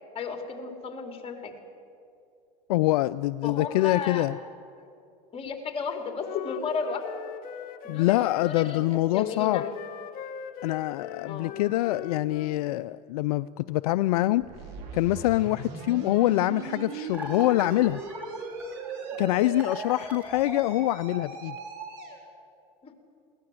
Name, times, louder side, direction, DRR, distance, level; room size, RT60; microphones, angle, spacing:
voice 1, 0.1-1.5 3.4-4.2 5.3-7.0 7.8-9.7 11.2-11.6 19.4-19.6 22.8-22.9, left 5 dB, 30° left, 4 dB, 3.4 m, -34 dB
voice 2, 2.7-4.3 7.9-9.6 10.6-14.4 14.9-18.0 19.2-21.6, left 17 dB, 75° left, 15 dB, 0.4 m, -25 dB
Wind instrument woodwind instrument, 5.8-8.9 9.3-12.6, left 10 dB, 45° left, 1.2 m, -40 dB
sound 1, 14.4-22.2, right 4 dB, 55° right, 4.8 m, -38 dB
sound 2, 17.1-21.4, equal, 10° right, 2.7 m, -41 dB
22.0 x 17.5 x 7.8 m, 2.5 s
hypercardioid pair, 100°, 20 cm